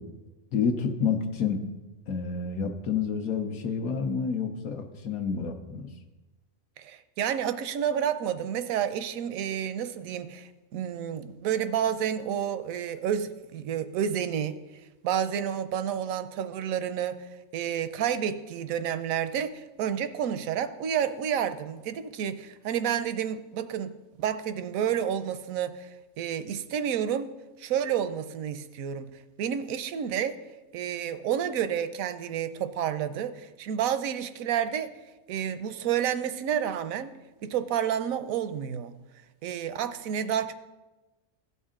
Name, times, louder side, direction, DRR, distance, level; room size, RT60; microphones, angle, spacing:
voice 1, 0.5-1.6 2.1-5.9, left 6 dB, 90° left, 3 dB, 1.3 m, -29 dB
voice 2, 6.8-14.6 15.0-23.9 24.2-27.3 27.6-29.1 29.4-30.4 30.7-34.9 35.3-37.2 37.4-38.9 39.4-40.5, right 9 dB, 85° right, 12 dB, 1.0 m, -30 dB
16.0 x 5.4 x 3.7 m, 1.1 s
omnidirectional pair, 1.4 m